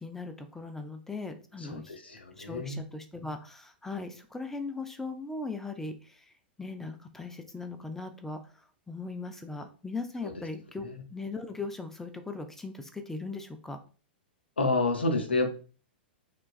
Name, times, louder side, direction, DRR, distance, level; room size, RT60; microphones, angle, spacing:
voice 1, 0.0-2.0 2.4-6.0 6.6-8.4 8.9-10.8 11.1-13.8, left 3 dB, 5° left, 7 dB, 0.3 m, -38 dB
voice 2, 1.6-2.8 10.2-10.5 10.8-11.0 14.6-15.5, left 2 dB, 85° left, 6 dB, 0.5 m, -29 dB
2.9 x 2.2 x 2.4 m, 0.38 s
figure-of-eight pair, 105°, 6 cm